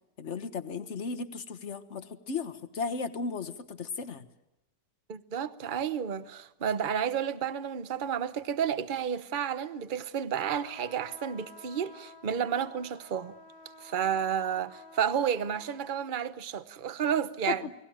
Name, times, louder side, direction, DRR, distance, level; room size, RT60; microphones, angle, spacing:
voice 1, 0.2-4.3 17.5-17.6, left 5 dB, 40° left, 1.5 m, -35 dB
voice 2, 5.1-13.4 13.8-17.6, right 8 dB, 35° right, 0.9 m, -31 dB
sound 1, 10.6-16.0, left 2 dB, 65° left, 2.0 m, -52 dB
30.0 x 20.5 x 8.9 m
omnidirectional pair, 1.9 m